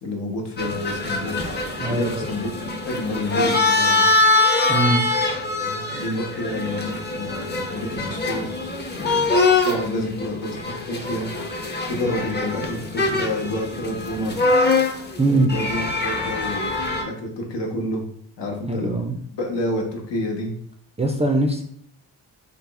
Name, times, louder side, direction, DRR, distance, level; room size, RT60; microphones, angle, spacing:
voice 1, 0.0-1.5 1.9-4.1 5.2-9.4 9.6-11.3 11.9-14.4 15.3-18.1 18.4-19.0 19.3-20.5, left 1 dB, 70° left, 1 dB, 0.9 m, -29 dB
sound 1, 0.6-17.0, left 3 dB, 25° left, 0.7 m, -23 dB
voice 2, 1.8-2.3 4.7-5.0 15.2-15.5 18.7-19.2 21.0-21.6, right 2 dB, 15° right, 3 dB, 0.4 m, -21 dB
3.4 x 2.0 x 3.4 m, 0.65 s
supercardioid pair, 50°, 45 cm